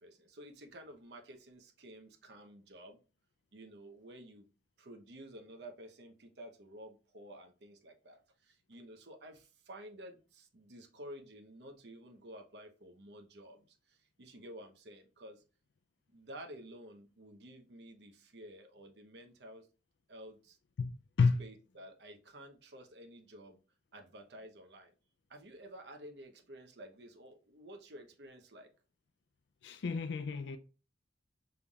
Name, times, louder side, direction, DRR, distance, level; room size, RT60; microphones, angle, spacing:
voice 1, 0.0-3.0 3.5-4.5 4.8-15.4 16.1-19.7 20.1-20.6 21.4-23.6 23.9-24.9 25.3-28.7, right 1 dB, 70° right, 0.8 m, -52 dB
voice 2, 29.6-30.6, left 4 dB, 80° left, 0.4 m, -30 dB
5.4 x 3.4 x 2.3 m
head